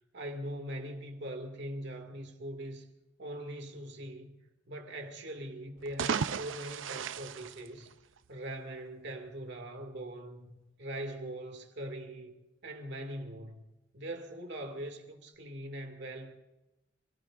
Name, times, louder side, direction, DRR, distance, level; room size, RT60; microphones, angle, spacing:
voice 1, 0.1-2.9 3.2-4.4 4.7-7.9 8.3-12.4 12.6-13.6 13.9-16.3, right 1 dB, 65° right, 2.3 m, -41 dB
sound 1, 5.8-8.4, right 6 dB, 85° right, 0.5 m, -35 dB
29.0 x 17.5 x 2.6 m
head